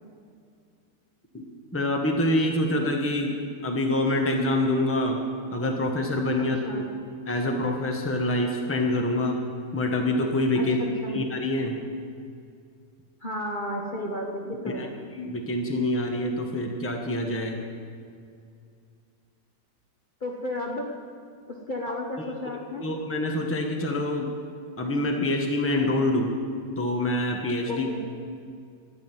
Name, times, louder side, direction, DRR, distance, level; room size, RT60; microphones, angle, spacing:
voice 1, 1.7-3.4 3.6-5.2 5.5-6.8 7.3-9.4 9.7-10.8 11.1-11.8 14.7-14.9 15.1-17.6 22.2-22.3 22.8-24.3 24.8-26.3 26.8-27.9, left 1 dB, 10° left, 2 dB, 1.1 m, -26 dB
voice 2, 10.5-11.2 13.2-14.9 20.2-20.9 21.5-22.8 27.7-28.0, left 1 dB, 35° left, -1 dB, 1.1 m, -33 dB
13.0 x 6.4 x 9.1 m, 2.3 s
omnidirectional pair, 1.6 m